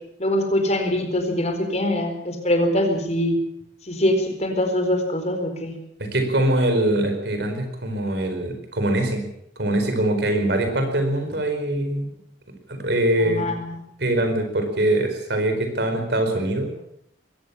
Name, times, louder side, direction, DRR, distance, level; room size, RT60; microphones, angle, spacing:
voice 1, 0.2-3.4 3.9-5.8 13.2-13.8, left 1 dB, 35° left, 5 dB, 4.4 m, -23 dB
voice 2, 6.0-9.2 9.6-12.1 12.7-13.6 14.0-16.7, right 1 dB, 60° right, 6 dB, 4.8 m, -23 dB
22.0 x 17.5 x 7.2 m, 0.74 s
head